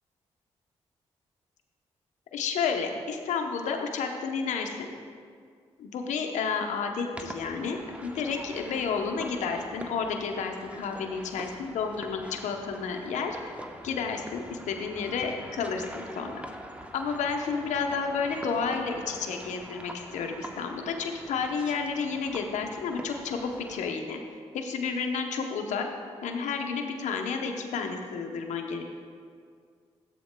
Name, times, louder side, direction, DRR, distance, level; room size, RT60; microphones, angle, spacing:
voice 1, 2.3-4.9 5.8-13.5 13.8-16.4 16.9-24.2 24.5-25.9 26.2-28.8, left 5 dB, 85° left, 4 dB, 0.8 m, -31 dB
sound 1, 7.1-23.9, right 1 dB, 10° right, 0.8 m, -44 dB
13.0 x 8.1 x 2.2 m, 2.1 s
supercardioid pair, 50°, 12 cm